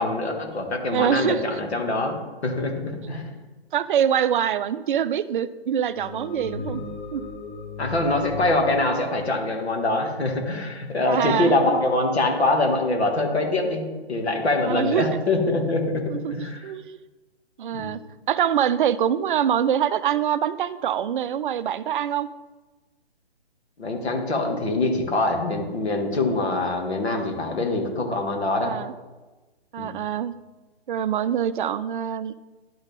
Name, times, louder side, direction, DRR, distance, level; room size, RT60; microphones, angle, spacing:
voice 1, 0.0-2.2 2.4-3.3 6.7-6.8 7.8-16.7 17.7-18.0 23.8-28.7 29.8-30.0, left 2 dB, 80° left, 2 dB, 2.0 m, -24 dB
voice 2, 0.9-1.6 3.7-6.8 7.1-7.2 11.1-11.5 14.7-15.2 16.1-16.4 16.6-17.0 17.6-18.0 18.3-22.3 28.6-28.9 29.7-30.3 30.9-32.3, right 9 dB, 50° right, 15 dB, 0.4 m, -24 dB
sound 1, 5.9-10.3, left 4 dB, 40° left, 1.4 m, -37 dB
11.5 x 4.0 x 3.5 m, 1.2 s
hypercardioid pair, 145°, 32 cm